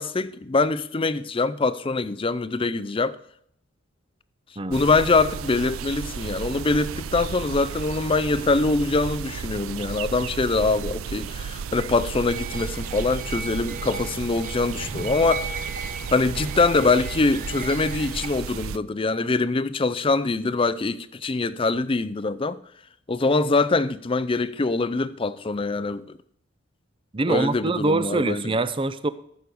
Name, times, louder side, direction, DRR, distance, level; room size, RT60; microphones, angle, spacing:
voice 1, 0.0-3.2 4.7-15.7 16.1-22.6 23.1-26.0 27.3-28.6, left 3 dB, 25° left, 0.5 m, -24 dB
sound 1, 4.7-18.8, right 7 dB, 85° right, 0.4 m, -34 dB
sound 2, 12.3-18.3, right 3 dB, 40° right, 1.0 m, -36 dB
voice 2, 27.1-29.1, right 2 dB, 25° right, 0.5 m, -24 dB
14.5 x 6.4 x 5.3 m
head